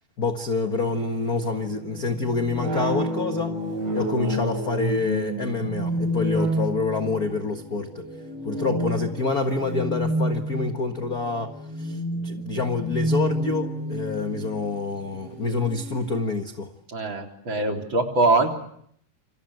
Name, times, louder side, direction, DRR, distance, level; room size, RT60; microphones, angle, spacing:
voice 1, 0.2-3.6 3.9-8.1 8.4-16.7, left 4 dB, 40° left, 6 dB, 1.5 m, -27 dB
sound 1, 0.7-16.1, equal, 50° right, 7.2 m, -30 dB
voice 2, 16.9-18.5, right 2 dB, 35° right, 3 dB, 4.1 m, -22 dB
28.5 x 25.5 x 8.0 m, 0.68 s
omnidirectional pair, 3.7 m